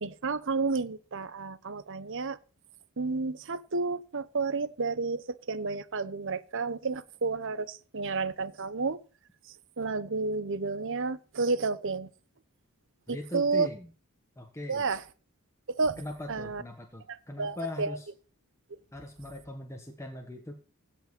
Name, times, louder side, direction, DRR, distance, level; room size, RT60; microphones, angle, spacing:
voice 1, 0.0-2.4 3.0-9.0 9.8-12.1 13.1-13.7 14.7-15.0 15.7-16.0 16.3-16.6 17.4-18.0, right 4 dB, 60° right, 0.9 m, -31 dB
voice 2, 13.1-13.9 14.4-14.9 16.0-18.1 18.9-20.5, left 1 dB, 15° left, 1.5 m, -40 dB
16.5 x 5.5 x 6.9 m
head